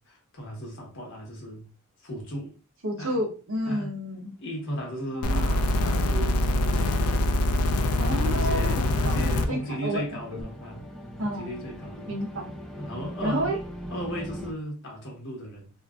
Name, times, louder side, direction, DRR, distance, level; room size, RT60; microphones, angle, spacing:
voice 1, 0.1-1.7 2.0-2.5 3.0-3.2 3.6-3.9 4.4-7.0 8.1-10.8 11.2-12.1 12.8-13.5 13.9-15.7, equal, 60° left, 1.2 m, -36 dB
voice 2, 2.8-4.3 5.1-5.5 8.0-10.0 10.3-10.5 11.2-11.5 12.1-12.5 13.2-13.6, equal, 65° right, 0.9 m, -31 dB
sound 1, 4.3-14.5, equal, ahead, 0.5 m, -42 dB
sound 2, 5.2-9.5 10.4-10.5, left 1 dB, 85° left, 0.4 m, -24 dB
2.9 x 2.5 x 2.3 m
head